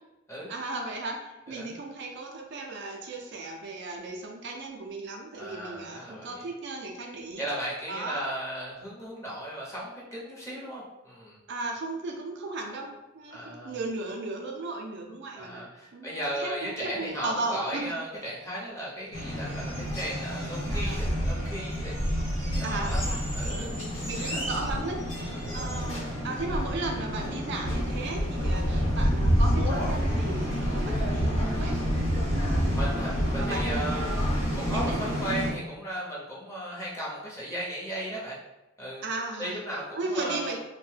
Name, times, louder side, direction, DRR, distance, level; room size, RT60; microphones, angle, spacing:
voice 1, 0.5-7.5 7.9-8.2 11.5-15.7 15.9-17.9 20.7-21.2 22.6-31.9 32.1-34.2 34.6-35.0 39.0-39.6 40.0-40.6, right 2 dB, 55° right, 1 dB, 0.4 m, -36 dB
voice 2, 5.4-6.4 7.4-11.4 13.3-13.8 15.4-22.0 22.3-23.0 23.3-24.0 24.2-24.5 25.3-25.8 27.8-27.9 32.7-38.4 38.8-39.0 39.4-40.6, equal, 15° left, -6 dB, 0.7 m, -36 dB
sound 1, 19.1-35.5, equal, 80° left, 0.9 m, -28 dB
2.6 x 2.1 x 3.2 m, 1.0 s
head